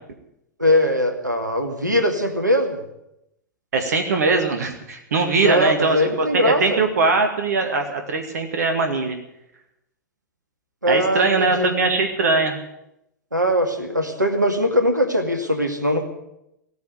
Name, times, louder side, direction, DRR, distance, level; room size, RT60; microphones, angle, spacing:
voice 1, 0.6-2.8 5.4-6.8 10.8-11.7 13.3-16.0, equal, 85° right, 5 dB, 2.2 m, -21 dB
voice 2, 3.7-9.2 10.9-12.6, right 3 dB, 60° right, 5 dB, 2.0 m, -21 dB
16.0 x 9.5 x 9.2 m, 0.84 s
figure-of-eight pair, 100°, 10 cm